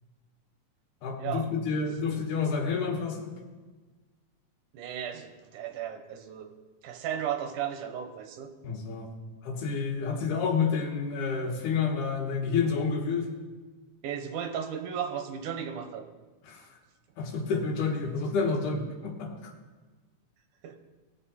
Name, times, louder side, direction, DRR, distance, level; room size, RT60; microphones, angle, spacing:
voice 1, 1.0-3.4 8.6-9.1 9.4-13.3 16.4-16.8 17.2-19.5, left 5 dB, 80° left, 2 dB, 2.8 m, -29 dB
voice 2, 4.7-6.5 6.8-8.5 14.0-16.1 20.6-20.8, right 9 dB, 80° right, 6 dB, 2.5 m, -35 dB
18.5 x 6.3 x 4.2 m, 1.3 s
omnidirectional pair, 3.6 m